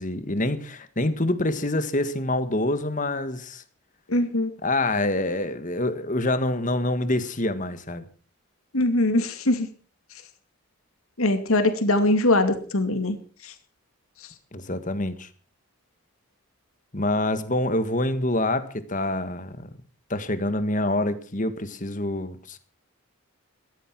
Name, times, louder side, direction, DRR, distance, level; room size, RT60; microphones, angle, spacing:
voice 1, 0.0-3.6 4.6-8.0 14.5-15.3 16.9-19.7 20.1-22.6, left 1 dB, 35° left, 11 dB, 1.7 m, -26 dB
voice 2, 4.1-4.5 8.7-9.7 11.2-13.2 13.4-13.5, left 1 dB, 75° left, 7 dB, 2.5 m, -22 dB
14.5 x 14.0 x 6.1 m, 0.40 s
head